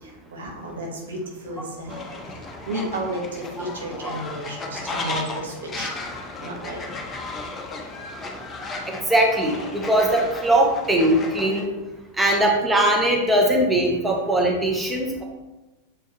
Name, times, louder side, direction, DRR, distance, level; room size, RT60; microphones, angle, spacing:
voice 1, 0.0-2.4 2.7-6.1 6.4-7.0, right 1 dB, 65° right, 0 dB, 1.1 m, -33 dB
Fowl, 1.9-11.7, left 2 dB, 20° left, 0.8 m, -34 dB
voice 2, 8.9-11.7 12.2-15.2, right 1 dB, 10° right, 0 dB, 1.0 m, -20 dB
6.8 x 4.5 x 3.0 m, 1.1 s
figure-of-eight pair, 90°, 0 cm